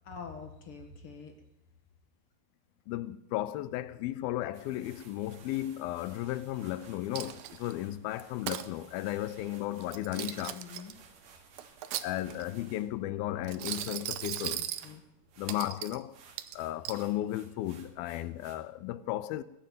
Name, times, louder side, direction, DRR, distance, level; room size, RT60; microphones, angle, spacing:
voice 1, 0.1-1.3 10.1-11.0 14.5-15.0, left 5 dB, 45° left, 2.2 m, -45 dB
voice 2, 2.9-10.5 12.0-14.6 15.4-16.2 16.5-19.4, left 14 dB, 80° left, 2.5 m, -35 dB
sound 1, 4.5-18.6, right 5 dB, 65° right, 3.4 m, -58 dB
Coin (dropping), 7.1-7.7 8.2-8.7 9.8-10.9 11.6-12.5 13.4-14.9 15.5-16.0 16.4-17.0, right 13 dB, 80° right, 1.7 m, -37 dB
20.0 x 7.6 x 9.2 m
omnidirectional pair, 4.3 m